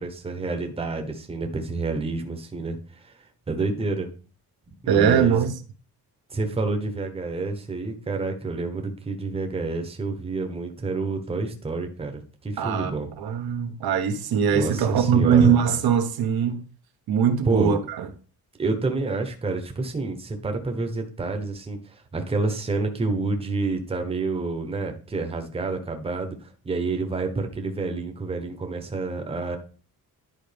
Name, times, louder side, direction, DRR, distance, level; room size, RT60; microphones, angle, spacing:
voice 1, 0.0-3.1 3.5-4.1 4.7-5.4 6.3-13.1 14.5-15.5 17.4-17.9 18.6-29.6, right 3 dB, 15° right, 0.9 m, -29 dB
voice 2, 4.9-5.5 12.6-16.6 17.1-18.1, right 7 dB, 80° right, 1.1 m, -21 dB
10.5 x 4.9 x 3.4 m
cardioid pair, 165°, 36 cm